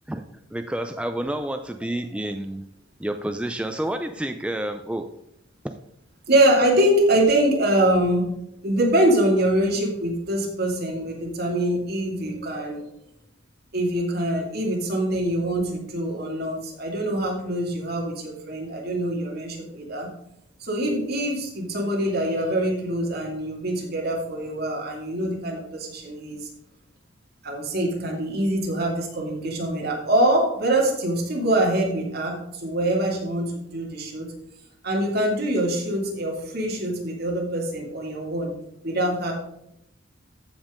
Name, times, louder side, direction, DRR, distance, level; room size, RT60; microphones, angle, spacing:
voice 1, 0.5-2.7 3.0-5.1, right 1 dB, 5° right, 6 dB, 0.4 m, -29 dB
voice 2, 6.3-12.9 13.7-20.1 20.6-26.5 27.4-34.3 34.8-38.5 38.8-39.3, right 1 dB, 60° right, -1 dB, 2.5 m, -24 dB
14.5 x 5.4 x 3.8 m, 0.79 s
head